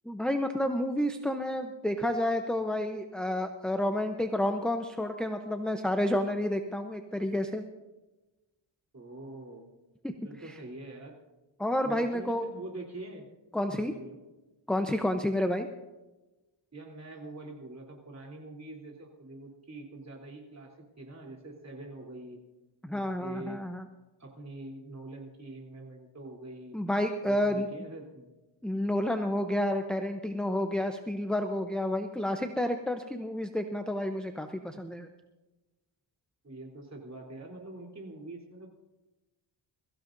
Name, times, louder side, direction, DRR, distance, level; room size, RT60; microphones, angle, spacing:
voice 1, 0.1-7.6 10.0-10.1 10.5-10.6 11.6-12.5 13.5-13.9 14.7-15.7 22.8-23.8 26.7-27.7 28.6-35.1, left 1 dB, ahead, 5 dB, 0.7 m, -30 dB
voice 2, 8.9-9.7 10.2-11.2 11.8-13.3 13.7-14.2 16.7-22.4 22.9-23.7 24.2-26.8 27.2-28.3 36.4-38.7, right 2 dB, 30° right, 0 dB, 3.5 m, -44 dB
22.5 x 15.0 x 2.6 m, 1.1 s
wide cardioid pair, 110°, 50 cm